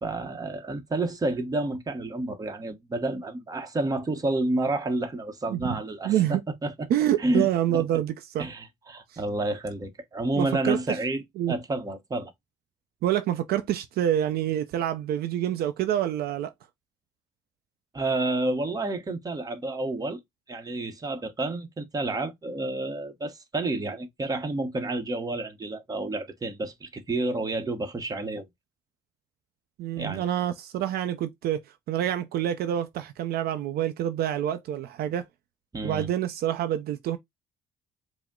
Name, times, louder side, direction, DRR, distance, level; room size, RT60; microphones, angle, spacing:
voice 1, 0.0-6.9 7.2-7.5 7.7-7.8 8.4-12.3 17.9-20.2 20.5-28.4 30.0-30.2 35.7-36.1, right 2 dB, 20° right, 0.9 m, -30 dB
voice 2, 6.0-6.4 6.9-8.5 9.1-9.2 10.3-11.0 11.4-11.5 13.0-16.5 29.8-31.6 31.9-35.3 35.8-37.2, right 11 dB, 65° right, 0.5 m, -27 dB
4.9 x 2.1 x 3.6 m
cardioid pair, 110°, 17 cm